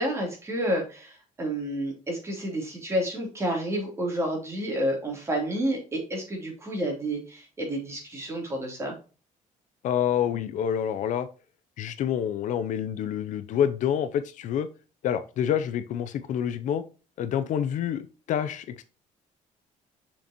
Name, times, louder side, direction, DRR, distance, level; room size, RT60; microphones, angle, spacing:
voice 1, 0.0-8.9, right 1 dB, 20° right, 3.2 m, -30 dB
voice 2, 9.8-11.3 11.8-14.7 15.0-16.8 17.2-18.8, left 9 dB, 60° left, 0.6 m, -27 dB
6.6 x 5.9 x 2.9 m
cardioid pair, 155°, 14 cm